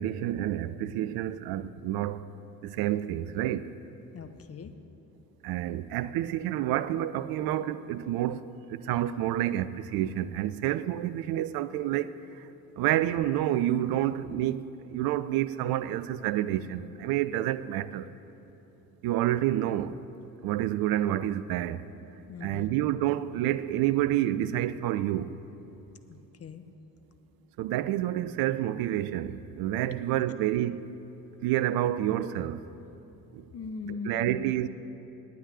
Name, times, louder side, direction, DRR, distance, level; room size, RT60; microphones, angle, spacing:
voice 1, 0.0-2.3 2.6-3.7 5.4-12.2 12.8-18.1 19.0-20.0 20.4-21.8 22.4-25.3 27.6-30.9 31.4-32.6 33.3-33.4 33.9-34.7, right 13 dB, 50° right, 0.5 m, -29 dB
voice 2, 4.1-4.7 22.3-22.6 26.1-26.6 33.5-34.5, left 5 dB, 30° left, 0.8 m, -40 dB
9.3 x 9.2 x 9.2 m
figure-of-eight pair, 50°, 48 cm